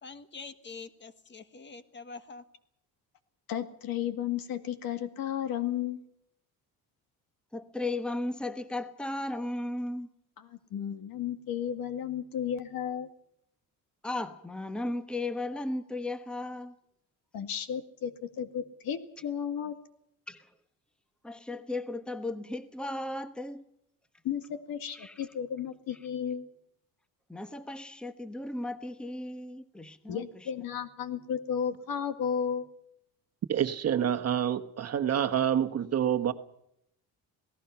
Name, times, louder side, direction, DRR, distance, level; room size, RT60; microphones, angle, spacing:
voice 1, 0.0-2.5, left 4 dB, 30° left, 1.4 m, -45 dB
voice 2, 3.5-6.0 10.4-13.1 17.3-19.8 24.2-26.5 30.1-32.7, left 8 dB, 70° left, 2.1 m, -33 dB
voice 3, 7.5-10.1 14.0-16.7 20.3-20.5 21.2-23.6 24.9-25.2 27.3-30.2, left 2 dB, 5° left, 1.1 m, -35 dB
voice 4, 33.5-36.3, right 9 dB, 40° right, 1.3 m, -27 dB
27.5 x 18.0 x 5.8 m
cardioid pair, 135°, 37 cm